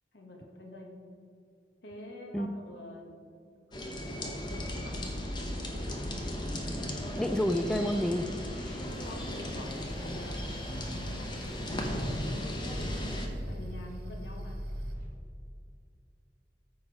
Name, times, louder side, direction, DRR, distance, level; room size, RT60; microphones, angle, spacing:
voice 1, 0.1-0.9 1.8-3.1 3.7-5.2 9.0-13.1 13.5-14.7, left 1 dB, 80° left, 1 dB, 1.6 m, -47 dB
sound 1, 3.7-13.3, left 1 dB, 25° left, 1.0 m, -37 dB
sound 2, 4.4-15.1, equal, 45° right, 1.8 m, -42 dB
voice 2, 7.1-8.9, equal, 5° left, 7 dB, 0.3 m, -30 dB
sound 3, 8.9-14.9, equal, 65° right, 0.8 m, -53 dB
14.0 x 4.8 x 4.9 m, 2.4 s
head